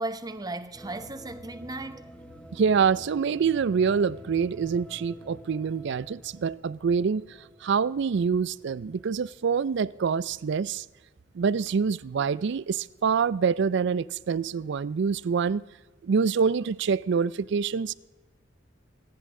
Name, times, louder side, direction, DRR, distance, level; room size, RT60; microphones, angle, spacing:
voice 1, 0.0-2.1, right 2 dB, 20° right, 0.8 m, -35 dB
sound 1, 0.7-9.0, equal, 5° left, 1.5 m, -48 dB
voice 2, 2.5-7.2 7.6-10.8 11.3-15.6 16.0-17.9, right 6 dB, 60° right, 0.4 m, -26 dB
26.0 x 10.5 x 3.7 m
head